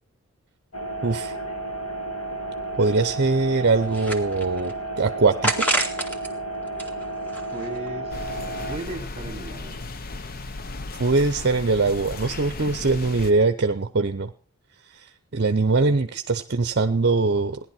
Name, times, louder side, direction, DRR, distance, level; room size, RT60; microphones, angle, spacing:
sound 1, 0.7-8.8, right 2 dB, 75° left, 1.9 m, -32 dB
voice 1, 1.0-1.4 2.8-5.7 11.0-14.3 14.9-17.6, right 3 dB, 50° right, 0.7 m, -22 dB
sound 2, 2.3-2.4 2.7-2.8 3.4-4.7 5.4-6.3 6.7-7.9, right 1 dB, 5° left, 2.1 m, -28 dB
voice 2, 7.5-9.9, right 2 dB, 25° right, 2.0 m, -37 dB
sound 3, 8.1-13.3, left 3 dB, 40° left, 0.8 m, -35 dB
17.5 x 11.0 x 5.8 m
head